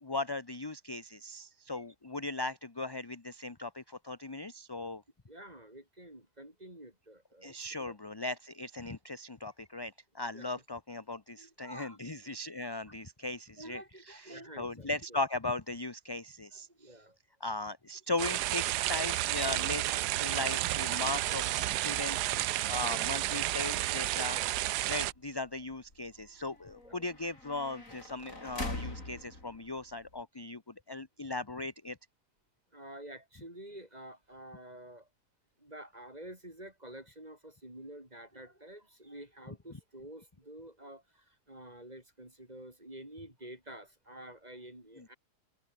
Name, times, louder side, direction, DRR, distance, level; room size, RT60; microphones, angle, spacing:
voice 1, 0.0-5.0 7.4-13.8 14.1-16.7 17.4-24.4 24.9-32.0 45.0-45.1, left 2 dB, 20° left, 0.9 m, -38 dB
voice 2, 5.3-8.0 10.3-10.5 11.3-12.0 13.6-15.2 16.5-17.2 19.8-20.0 22.8-23.1 24.3-24.5 26.8-27.0 32.7-35.1 35.6-45.2, right 1 dB, 25° right, 6.7 m, -49 dB
sound 1, 18.2-25.1, right 15 dB, 85° right, 1.2 m, -31 dB
sound 2, 19.3-30.2, left 2 dB, 55° left, 6.9 m, -47 dB
open air
omnidirectional pair, 1.7 m